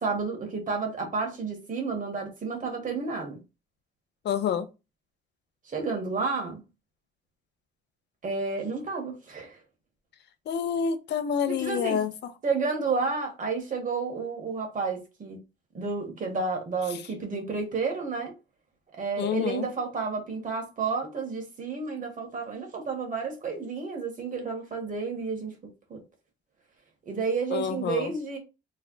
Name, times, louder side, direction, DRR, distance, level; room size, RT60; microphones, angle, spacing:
voice 1, 0.0-3.4 5.7-6.6 8.2-9.6 11.5-12.0 12.4-15.4 15.7-18.3 19.0-25.6 25.9-26.0 27.1-28.4, right 4 dB, 40° right, 1.5 m, -31 dB
voice 2, 4.2-4.7 10.5-12.3 19.2-19.7 27.5-28.1, left 7 dB, 60° left, 0.6 m, -28 dB
3.3 x 2.1 x 3.9 m
cardioid pair, 90°, 20 cm